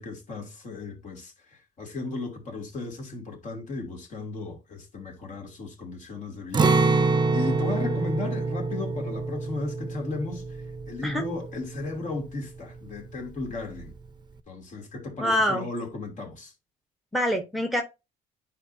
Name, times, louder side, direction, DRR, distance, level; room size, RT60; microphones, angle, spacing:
voice 1, 0.0-13.9 14.5-16.5, left 3 dB, 45° left, 2.5 m, -35 dB
Acoustic guitar, 6.5-12.4 12.7-12.9 13.4-13.9, right 3 dB, 25° right, 0.7 m, -26 dB
voice 2, 15.2-15.7 17.1-17.8, equal, ahead, 1.0 m, -25 dB
9.8 x 4.8 x 2.7 m
cardioid pair, 110°, 17 cm